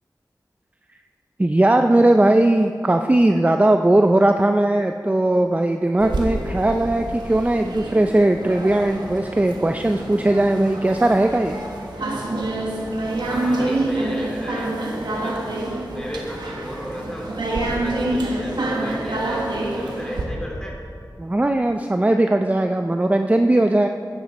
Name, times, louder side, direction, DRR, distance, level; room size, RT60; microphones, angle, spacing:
voice 1, 1.4-11.6 21.2-23.9, right 1 dB, 20° right, 6 dB, 0.5 m, -18 dB
sound 1, 6.0-20.2, right 2 dB, 90° right, 1.3 m, -27 dB
voice 2, 13.2-15.4 15.9-20.8, equal, 10° left, -3 dB, 3.2 m, -34 dB
12.5 x 9.5 x 4.2 m, 2.3 s
cardioid pair, 45°, 7 cm